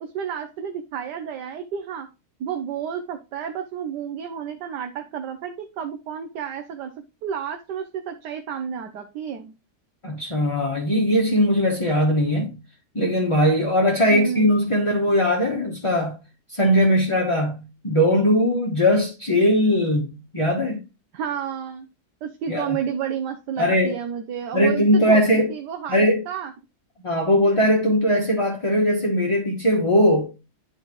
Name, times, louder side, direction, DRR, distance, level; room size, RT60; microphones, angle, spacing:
voice 1, 0.0-2.1 2.4-9.5 14.1-14.5 21.1-21.9 22.2-26.5, right 8 dB, 85° right, 1.3 m, -31 dB
voice 2, 10.0-12.6 12.9-16.2 16.5-20.8 22.5-22.8 23.6-24.0 24.5-25.5 25.9-26.2 27.0-30.3, equal, 20° left, 0.9 m, -20 dB
10.5 x 4.5 x 3.1 m
omnidirectional pair, 1.8 m